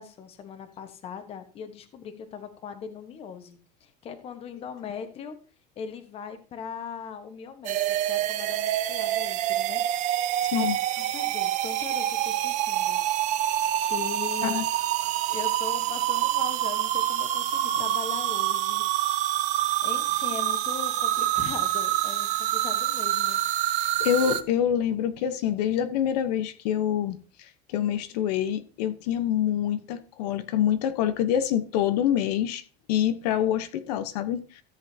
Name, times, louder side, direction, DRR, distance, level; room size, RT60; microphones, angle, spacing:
voice 1, 0.0-5.4 5.7-10.1 10.4-10.7 11.0-13.0 13.9-14.5 15.3-19.3 19.8-23.4, left 7 dB, 30° left, 1.2 m, -40 dB
sound 1, 7.6-24.4, right 12 dB, 40° right, 0.7 m, -26 dB
voice 2, 24.0-32.6 32.9-34.6, left 10 dB, 90° left, 1.0 m, -26 dB
13.5 x 8.0 x 2.8 m
cardioid pair, 165°, 20 cm